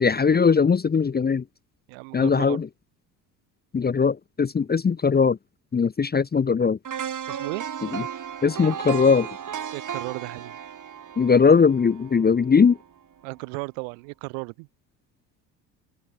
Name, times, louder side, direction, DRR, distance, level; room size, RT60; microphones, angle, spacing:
voice 1, 0.0-1.4 2.1-2.7 3.7-5.4 5.7-6.8 7.9-8.0 8.4-9.3 11.2-12.8, left 5 dB, 20° left, 0.9 m, -20 dB
voice 2, 1.9-2.6 7.3-7.7 9.7-10.6 13.2-14.7, right 40 dB or more, 70° right, 5.9 m, -35 dB
sound 1, 6.8-12.9 13.3-13.4, right 8 dB, 40° right, 3.0 m, -35 dB
open air
hypercardioid pair, 60°, 49 cm